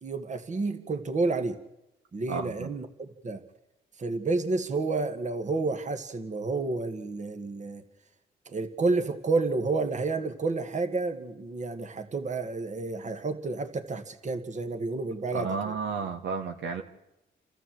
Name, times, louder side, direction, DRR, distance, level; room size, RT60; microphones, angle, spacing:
voice 1, 0.0-1.6 2.1-3.4 4.0-7.8 8.5-15.7, right 3 dB, 35° right, 7 dB, 1.9 m, -30 dB
voice 2, 2.3-2.7 15.3-16.8, right 5 dB, 70° right, 4 dB, 1.9 m, -32 dB
29.0 x 13.5 x 7.8 m, 0.93 s
cardioid pair, 90°, 20 cm